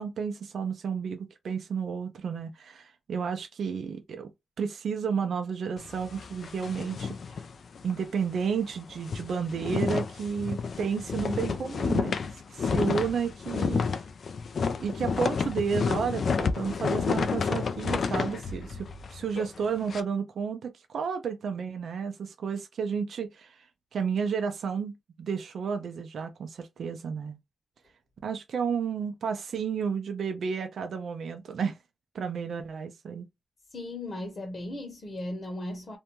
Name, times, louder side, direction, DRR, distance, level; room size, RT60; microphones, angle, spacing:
voice 1, 0.0-4.3 4.6-7.4 7.8-12.2 12.5-13.8 14.8-23.7 23.9-27.4 28.2-31.8 32.1-33.3, right 6 dB, 80° right, 0.5 m, -32 dB
sound 1, 5.8-8.0 8.4-8.5 8.8-20.0, left 5 dB, 65° left, 0.4 m, -30 dB
voice 2, 33.7-36.0, left 1 dB, 45° left, 1.0 m, -36 dB
2.6 x 2.2 x 3.0 m
cardioid pair, 85°, 0 cm